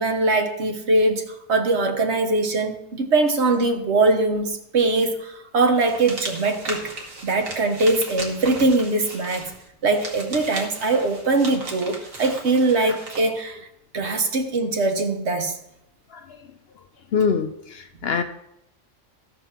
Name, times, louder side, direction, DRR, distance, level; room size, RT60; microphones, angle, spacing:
voice 1, 0.0-6.8 7.2-9.5 9.8-13.6 13.9-15.6, right 3 dB, 60° right, 5 dB, 1.4 m, -22 dB
sound 1, 5.8-13.3, right 2 dB, 85° right, 2.1 m, -36 dB
voice 2, 17.1-18.2, left 6 dB, 60° left, 8 dB, 0.8 m, -24 dB
13.5 x 5.5 x 5.8 m, 0.80 s
omnidirectional pair, 1.3 m